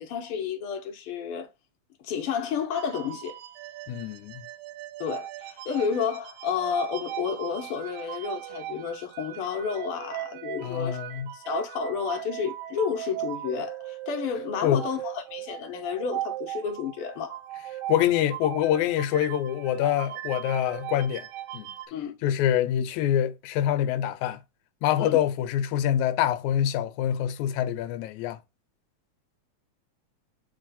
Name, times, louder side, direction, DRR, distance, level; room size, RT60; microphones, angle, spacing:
voice 1, 0.0-1.5 2.0-3.4 5.0-11.0 11.3-17.4 21.9-22.2 25.0-25.2, left 7 dB, 60° left, 1.6 m, -31 dB
sound 1, 2.7-21.9, right 13 dB, 80° right, 1.8 m, -38 dB
voice 2, 3.9-4.4 10.6-11.3 14.6-14.8 17.9-21.3 21.5-21.7 22.2-24.4 24.8-28.4, left 11 dB, 85° left, 2.0 m, -25 dB
7.7 x 3.2 x 4.1 m
omnidirectional pair, 3.4 m